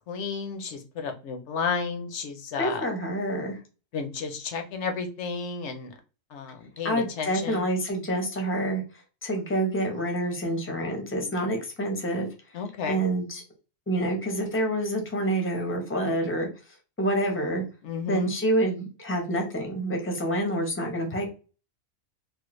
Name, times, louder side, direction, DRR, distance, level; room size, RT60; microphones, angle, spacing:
voice 1, 0.1-2.8 3.9-5.9 6.3-7.6 12.5-13.0 17.8-18.3, left 5 dB, 65° left, 6 dB, 0.9 m, -32 dB
voice 2, 2.6-3.6 6.8-8.8 9.2-12.3 12.9-13.4 13.9-16.5 17.0-17.6 18.1-21.2, right 1 dB, 15° left, 2 dB, 0.6 m, -27 dB
3.3 x 2.1 x 3.0 m, 0.33 s
omnidirectional pair, 1.4 m